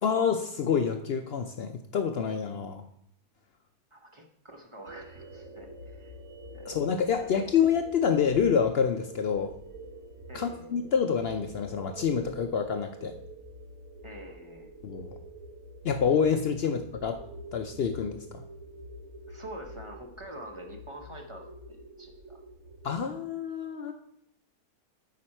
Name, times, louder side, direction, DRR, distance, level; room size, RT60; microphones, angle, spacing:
voice 1, 0.0-2.8 6.6-9.5 10.3-13.1 14.8-15.1 15.8-17.2 17.5-18.2 22.8-23.9, left 7 dB, 70° left, 6 dB, 0.5 m, -27 dB
voice 2, 3.9-6.1 6.5-6.7 7.2-7.3 10.3-10.7 14.0-14.7 19.3-22.4, right 1 dB, 25° right, 2 dB, 0.8 m, -46 dB
sound 1, 4.9-23.1, right 1 dB, 55° right, 1.3 m, -46 dB
9.1 x 6.0 x 4.3 m, 0.74 s
omnidirectional pair, 1.7 m